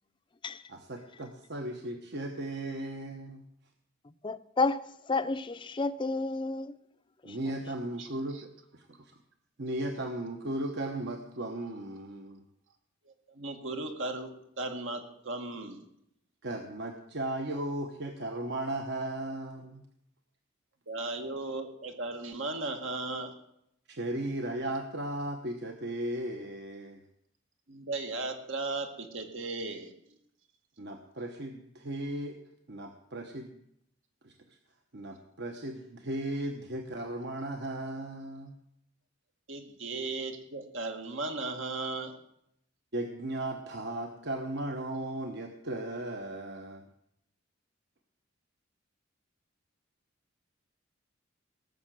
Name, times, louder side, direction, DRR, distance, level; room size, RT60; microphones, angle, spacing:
voice 1, 0.7-3.4 7.2-9.1 9.6-12.4 16.4-19.9 23.9-27.0 30.8-32.4 32.7-33.6 34.2-34.6 34.9-38.6 42.9-46.8, right 1 dB, 60° right, 1.1 m, -36 dB
voice 2, 4.2-4.8 5.1-6.7, left 3 dB, 25° left, 0.5 m, -30 dB
voice 3, 13.1-14.3 14.6-15.8 20.9-23.3 27.7-29.9 39.5-42.2, right 2 dB, 75° right, 2.1 m, -36 dB
18.0 x 6.8 x 7.6 m
head